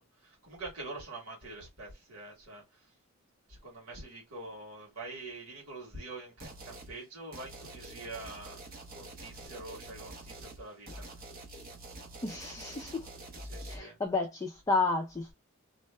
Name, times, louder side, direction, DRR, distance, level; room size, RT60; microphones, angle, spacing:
voice 1, 0.0-2.9 3.5-8.6 8.9-11.1 13.4-14.0, right 2 dB, 90° right, 1.4 m, -45 dB
sound 1, 6.4-6.9 7.3-13.8, right 2 dB, 45° right, 0.9 m, -46 dB
voice 2, 12.2-13.1 13.7-15.3, left 3 dB, 15° left, 0.4 m, -31 dB
2.7 x 2.1 x 3.2 m
head